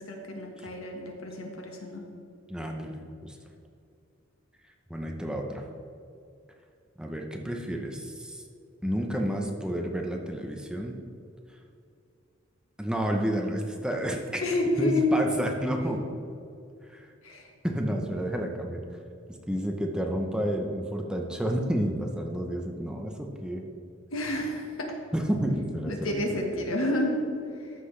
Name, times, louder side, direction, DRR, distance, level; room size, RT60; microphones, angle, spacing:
voice 1, 0.0-2.0 14.4-15.1 17.2-17.5 24.1-24.9 25.9-27.3, left 1 dB, 75° left, 1 dB, 1.4 m, -29 dB
voice 2, 2.5-3.4 4.9-5.6 7.0-8.4 8.8-11.0 12.8-14.4 14.8-16.0 16.9-17.1 17.6-18.8 19.5-23.6 25.1-26.2, equal, 5° right, 2 dB, 0.7 m, -30 dB
13.5 x 6.0 x 3.2 m, 2.5 s
head